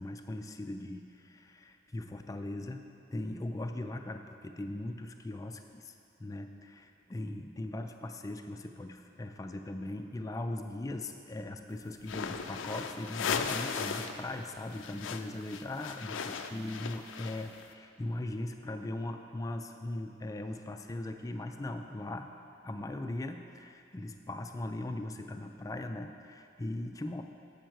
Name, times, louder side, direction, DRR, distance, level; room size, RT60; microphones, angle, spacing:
voice 1, 0.0-2.8 3.1-5.9 6.2-22.3 22.6-27.2, left 1 dB, 20° left, 6 dB, 0.3 m, -39 dB
sound 1, 12.0-14.2 14.5-17.6, left 6 dB, 90° left, 0.4 m, -37 dB
7.7 x 7.2 x 4.5 m, 2.6 s
head